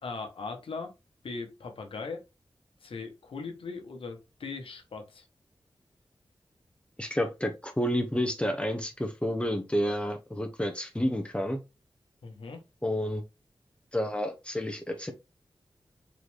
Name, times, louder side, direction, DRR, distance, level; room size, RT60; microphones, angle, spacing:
voice 1, 0.0-0.9 1.2-2.3 2.8-5.2 12.2-12.6, left 4 dB, 85° left, 1.0 m, -39 dB
voice 2, 7.0-11.6 12.8-13.2 13.9-15.1, equal, 10° left, 0.8 m, -30 dB
4.0 x 3.1 x 3.3 m
cardioid pair, 50°, 9 cm